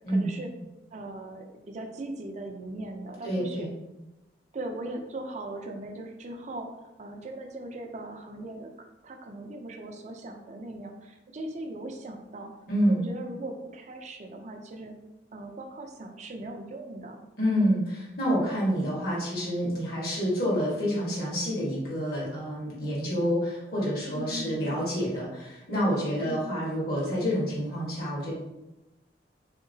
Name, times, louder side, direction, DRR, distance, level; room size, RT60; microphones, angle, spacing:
voice 1, 0.1-0.5 0.9-3.7 4.5-12.5 12.9-14.9 15.3-17.2 24.1-24.7 26.2-26.5, right 1 dB, 40° right, 4 dB, 0.4 m, -39 dB
voice 2, 3.2-3.7 12.7-13.0 17.4-28.3, equal, 60° left, -6 dB, 1.3 m, -28 dB
3.6 x 2.8 x 2.6 m, 0.98 s
head